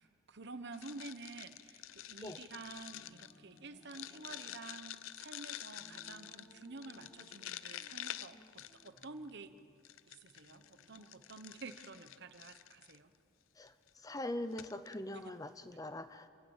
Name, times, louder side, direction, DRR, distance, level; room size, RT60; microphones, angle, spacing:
voice 1, 0.0-9.5 10.1-13.1 15.1-15.3 15.7-15.8, right 3 dB, 55° right, 10 dB, 1.1 m, -50 dB
sound 1, 0.7-9.3 9.8-13.0 13.7-13.9 14.2-14.3 14.5-14.9, left 12 dB, 75° left, 0.6 m, -48 dB
sound 2, 2.9-4.6 5.7-7.4 7.8-9.8 10.4-11.1, equal, 55° left, 5.5 m, -63 dB
voice 2, 14.0-16.3, left 1 dB, 15° left, 11 dB, 0.7 m, -42 dB
28.0 x 18.0 x 7.3 m, 2.2 s
head